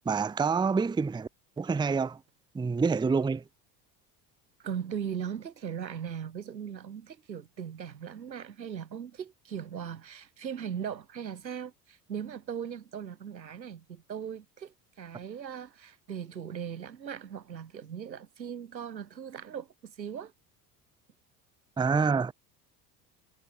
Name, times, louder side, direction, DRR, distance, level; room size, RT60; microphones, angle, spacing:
voice 1, 0.1-1.3 1.6-2.2 2.5-3.4 21.8-22.3, right 5 dB, 10° right, 0.7 m, -27 dB
voice 2, 4.6-20.3, right 8 dB, 85° right, 2.1 m, -39 dB
figure-of-eight pair, 70°, 50 cm